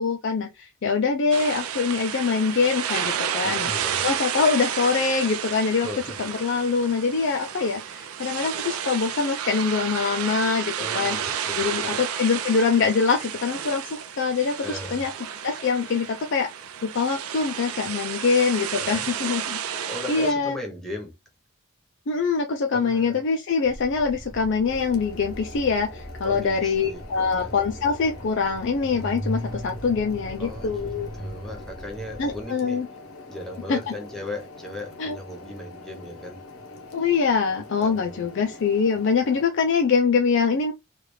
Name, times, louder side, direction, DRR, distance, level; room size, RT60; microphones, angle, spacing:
voice 1, 0.0-3.7 4.0-5.9 6.4-15.1 15.4-16.5 16.8-20.6 22.1-31.1 32.2-32.9 33.7-33.9 35.0-35.1 36.9-40.7, left 5 dB, 55° left, 0.4 m, -24 dB
sound 1, 1.3-20.3, right 8 dB, 85° right, 0.4 m, -31 dB
voice 2, 3.4-4.1 5.7-6.2 10.8-12.0 14.6-15.1 18.8-19.1 19.9-21.2 22.7-23.2 26.2-27.5 30.4-32.8 33.3-36.4 37.8-38.3, left 1 dB, ahead, 0.9 m, -37 dB
sound 2, 23.6-32.4, equal, 15° right, 0.5 m, -38 dB
sound 3, 24.7-39.5, left 3 dB, 80° left, 0.8 m, -44 dB
3.2 x 2.4 x 3.1 m
head